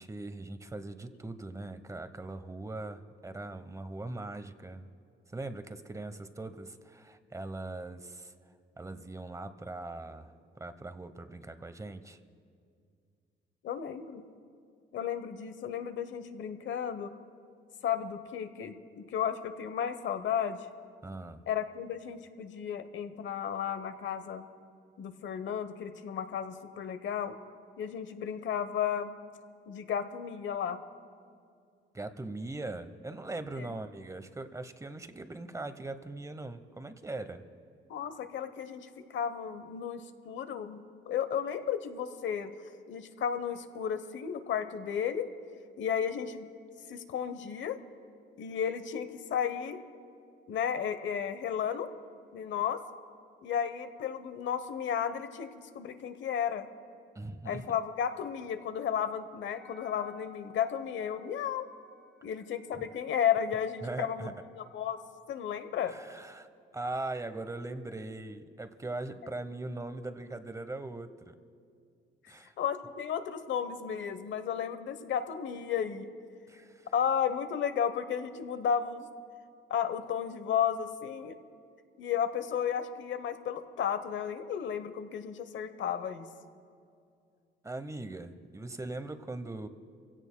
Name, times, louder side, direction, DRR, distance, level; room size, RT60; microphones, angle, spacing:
voice 1, 0.0-4.9 5.3-8.3 8.8-10.3 10.6-12.2 21.0-21.4 31.9-37.4 57.1-57.6 62.7-62.8 63.8-64.3 65.9-66.5 66.7-71.4 72.3-72.5 76.5-76.9 87.6-89.7, right 2 dB, 15° right, 10 dB, 0.9 m, -40 dB
voice 2, 13.6-14.2 14.9-17.1 17.8-20.7 21.5-24.4 25.0-27.4 27.8-29.1 29.7-30.8 33.6-33.7 37.9-42.5 42.9-45.3 45.8-46.5 46.9-47.8 48.4-49.8 50.5-51.9 52.3-52.8 53.4-56.7 57.4-61.7 62.2-65.0 65.3-65.9 72.6-76.1 76.9-79.1 79.7-81.3 82.0-86.3, left 8 dB, 70° left, 10 dB, 1.0 m, -33 dB
Wind instrument woodwind instrument, 59.4-65.1, left 6 dB, ahead, 1.5 m, -57 dB
26.5 x 16.5 x 2.2 m, 2.3 s
cardioid pair, 90°, 20 cm